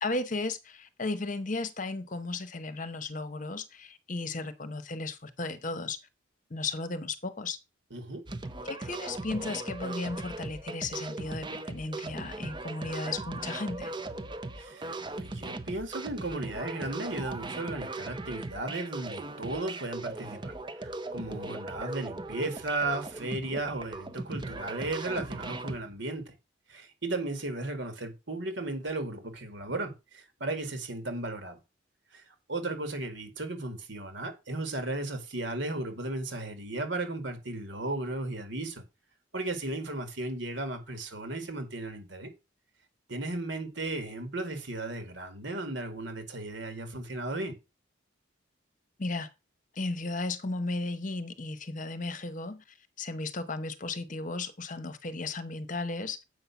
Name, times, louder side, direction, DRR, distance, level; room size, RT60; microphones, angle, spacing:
voice 1, 0.0-6.0 6.5-7.6 8.6-13.9 49.0-49.3 49.7-56.2, left 3 dB, 40° left, 0.9 m, -35 dB
voice 2, 7.9-8.2 14.6-20.5 20.8-26.3 26.7-31.6 32.1-38.8 39.3-42.3 43.1-47.6, right 2 dB, 65° right, 2.0 m, -35 dB
sound 1, 8.3-25.8, right 2 dB, 25° right, 0.7 m, -39 dB
7.8 x 5.6 x 5.7 m
head